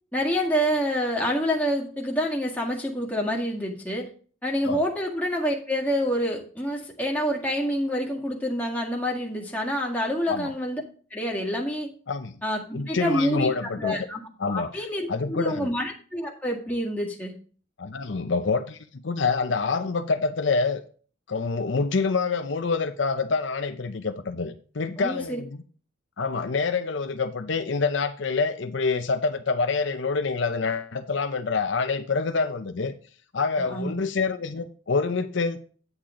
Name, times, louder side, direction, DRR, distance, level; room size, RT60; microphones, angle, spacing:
voice 1, 0.1-4.1 4.4-10.8 11.1-11.9 12.4-14.2 14.5-17.3 25.0-25.4 33.4-34.0, equal, 10° left, 1.9 m, -27 dB
voice 2, 12.7-14.0 14.4-15.7 17.8-20.8 21.3-25.6 26.2-32.9 33.3-35.6, left 4 dB, 65° left, 0.7 m, -26 dB
9.5 x 8.7 x 3.8 m
head